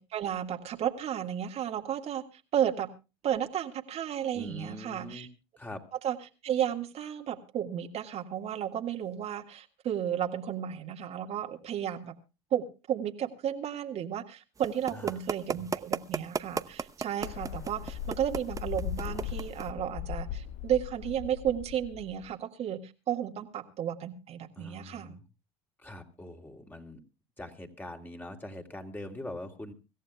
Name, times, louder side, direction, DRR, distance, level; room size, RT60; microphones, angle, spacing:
voice 1, 0.0-2.9 3.2-5.3 6.0-6.2 6.4-12.1 12.5-25.2, right 10 dB, 50° right, 1.8 m, -33 dB
voice 2, 4.3-5.3 5.6-5.8 14.9-15.2 24.6-25.3 25.8-27.0 27.4-29.7, left 1 dB, 15° left, 3.0 m, -43 dB
sound 1, 14.6-19.7, right 5 dB, 25° right, 0.8 m, -34 dB
sound 2, 17.2-22.3, left 10 dB, 65° left, 0.7 m, -39 dB
25.0 x 14.5 x 2.3 m
supercardioid pair, 85°, 14 cm